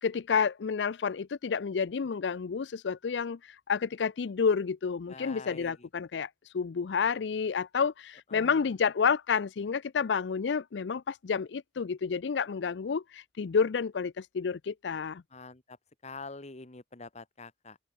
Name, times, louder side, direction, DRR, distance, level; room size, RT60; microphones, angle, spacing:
voice 1, 0.0-15.2, left 6 dB, 75° left, 0.5 m, -30 dB
voice 2, 5.1-5.9 8.3-8.7 15.3-15.8 16.0-17.8, left 3 dB, 40° left, 1.6 m, -45 dB
open air
head